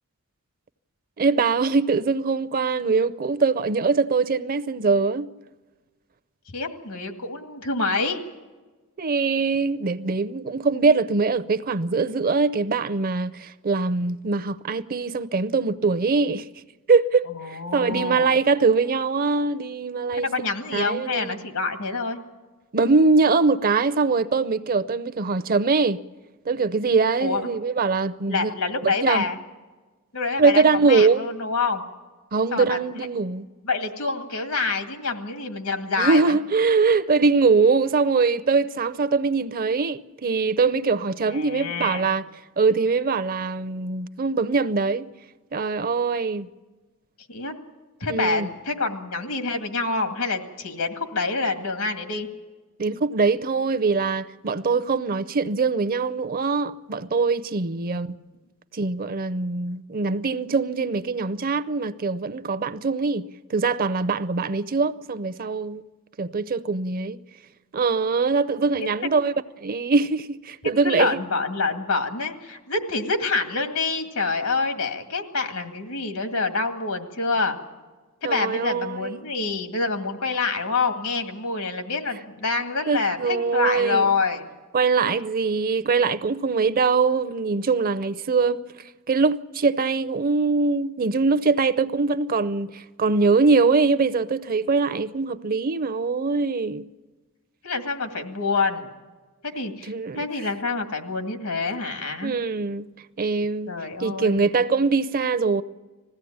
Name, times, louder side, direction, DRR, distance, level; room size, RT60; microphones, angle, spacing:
voice 1, 1.2-5.3 9.0-16.5 16.9-20.5 20.7-21.4 22.7-26.0 26.5-28.5 28.8-29.2 30.4-31.3 32.3-33.5 36.0-42.2 42.6-45.1 45.5-46.5 48.1-48.5 52.8-58.2 58.7-65.8 66.2-67.2 67.7-69.3 69.6-71.2 78.2-79.2 82.9-84.1 84.7-88.6 89.1-96.9 99.9-100.3 102.2-102.9 103.2-103.7 104.0-105.6, right 4 dB, 40° right, 0.6 m, -22 dB
voice 2, 6.5-8.2 17.3-18.3 20.1-22.2 27.2-27.5 28.3-29.4 30.1-31.8 32.5-32.8 33.6-36.4 41.3-42.1 47.3-47.5 48.0-52.3 57.7-58.2 68.8-68.9 70.8-77.6 78.2-84.5 97.6-98.9 99.5-102.3 103.7-104.5, left 4 dB, 85° left, 2.2 m, -27 dB
20.5 x 16.0 x 8.7 m
head